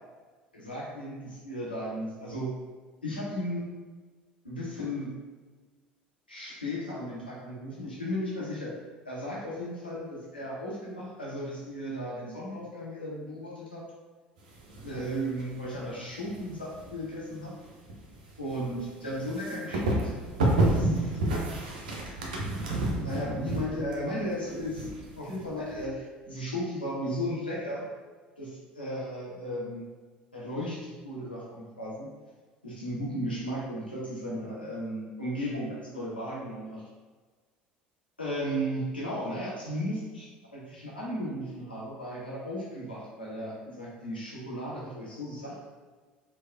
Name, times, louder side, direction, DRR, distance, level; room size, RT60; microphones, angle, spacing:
voice 1, 0.5-2.5 3.0-3.7 4.4-5.1 6.3-8.7 9.0-13.8 14.8-17.5 18.4-20.1 20.7-21.3 22.9-24.9 25.2-27.8 28.4-29.8 30.3-32.1 32.6-36.8 38.2-45.6, equal, 85° left, -6 dB, 0.6 m, -35 dB
sound 1, 14.4-15.8 16.1-25.8, right 2 dB, 70° right, 0.5 m, -30 dB
3.1 x 2.0 x 2.3 m, 1.4 s
figure-of-eight pair, 65°, 5 cm